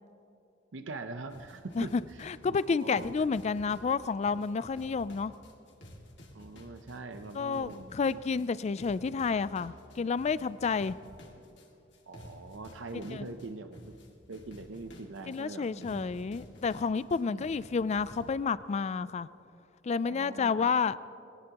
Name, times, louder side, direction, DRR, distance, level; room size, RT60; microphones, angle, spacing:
voice 1, 0.7-2.2 2.5-3.1 6.3-8.2 12.1-14.0 14.3-16.1 17.3-17.5 20.0-20.7, right 3 dB, 75° right, 8 dB, 0.7 m, -43 dB
sound 1, 1.3-18.3, left 1 dB, 65° left, 2.2 m, -52 dB
voice 2, 1.8-5.3 7.3-11.0 13.1-13.3 15.3-19.3 19.8-21.0, left 5 dB, 35° left, 17 dB, 0.3 m, -30 dB
22.0 x 18.0 x 2.9 m, 2.7 s
head